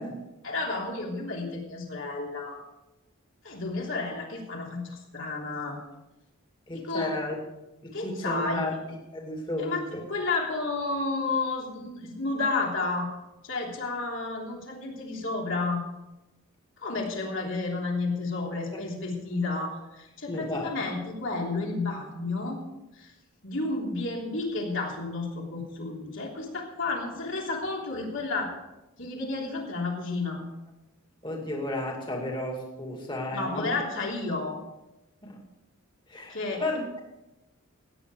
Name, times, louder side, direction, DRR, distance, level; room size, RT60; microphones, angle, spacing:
voice 1, 0.4-2.6 3.4-5.8 6.7-7.1 7.9-8.8 9.6-9.8 10.1-13.1 13.4-15.9 16.8-22.6 23.0-23.1 23.4-28.5 29.0-30.4 33.3-34.6 36.3-36.6, left 3 dB, 55° left, -1 dB, 3.2 m, -31 dB
voice 2, 6.7-7.4 7.8-10.0 20.3-20.7 31.2-33.8 35.2-35.4 36.1-36.9, left 1 dB, 20° left, 1 dB, 2.4 m, -33 dB
17.0 x 9.6 x 4.9 m, 0.97 s
head